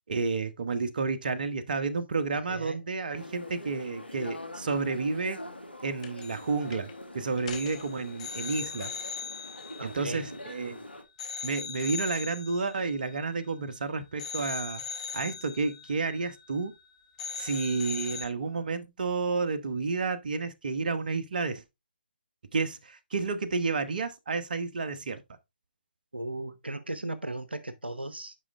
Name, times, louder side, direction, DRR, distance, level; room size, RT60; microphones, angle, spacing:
voice 1, 0.1-5.4 5.8-9.0 9.8-10.8 11.4-14.8 15.1-16.7 17.3-21.6 22.5-25.2, right 4 dB, 60° right, 1.2 m, -31 dB
voice 2, 2.5-2.8 9.8-10.4 26.1-28.4, right 1 dB, 90° right, 0.9 m, -36 dB
sound 1, 3.1-11.0, left 1 dB, 90° left, 2.0 m, -44 dB
sound 2, 6.0-6.5 6.7-6.9 7.4-10.7 11.2-13.8 14.2-16.9 17.2-18.3, left 6 dB, 40° left, 1.9 m, -40 dB
9.8 x 5.2 x 3.3 m
figure-of-eight pair, 140°, 5 cm